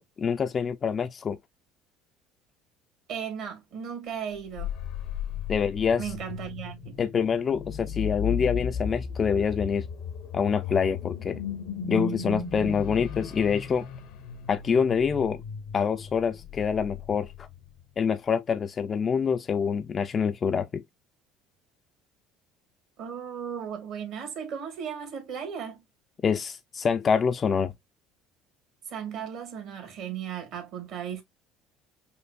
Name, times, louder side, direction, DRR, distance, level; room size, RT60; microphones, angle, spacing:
voice 1, 0.0-1.4 5.5-6.1 7.0-9.9 10.3-11.4 11.9-13.9 14.5-15.4 15.7-17.5 18.0-20.8 26.2-27.7, left 6 dB, 35° left, 0.4 m, -26 dB
voice 2, 3.1-4.7 6.0-7.0 23.0-25.8 28.9-31.2, right 8 dB, 65° right, 1.6 m, -36 dB
sound 1, 4.3-17.8, left 6 dB, 70° left, 0.7 m, -35 dB
5.6 x 2.1 x 2.2 m
supercardioid pair, 85°, 0 cm